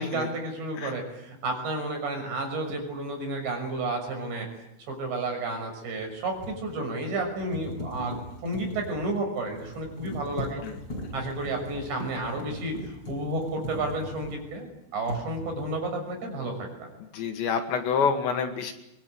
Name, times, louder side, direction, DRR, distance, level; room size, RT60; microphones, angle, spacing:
voice 1, 0.0-4.5 4.9-8.2 8.4-10.7 11.1-12.7 13.1-16.7, right 2 dB, 60° right, 3 dB, 8.6 m, -31 dB
sound 1, 2.7-2.8 5.9-14.7 15.0-15.8, left 1 dB, 20° left, 6.4 m, -39 dB
voice 2, 17.1-18.7, left 6 dB, 65° left, 5 dB, 4.2 m, -27 dB
25.0 x 22.5 x 9.6 m, 0.85 s
omnidirectional pair, 5.7 m